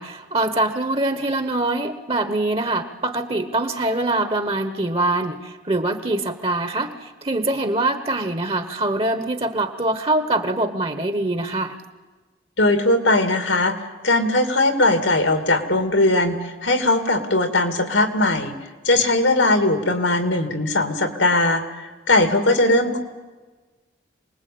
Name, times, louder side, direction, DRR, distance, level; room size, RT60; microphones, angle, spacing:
voice 1, 0.0-11.8, right 2 dB, 30° right, 9 dB, 1.2 m, -24 dB
voice 2, 12.6-13.8 14.0-18.6 18.8-23.0, left 2 dB, 85° left, 7 dB, 2.8 m, -19 dB
27.0 x 20.0 x 8.7 m, 1.3 s
head